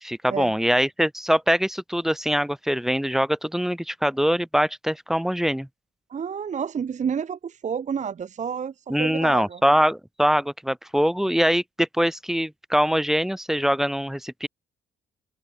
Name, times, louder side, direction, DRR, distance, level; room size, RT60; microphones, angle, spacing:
voice 1, 0.0-5.7 8.9-14.5, equal, ahead, 1.9 m, -23 dB
voice 2, 6.1-9.6, right 7 dB, 35° right, 0.7 m, -30 dB
open air
cardioid pair, 90°, 20 cm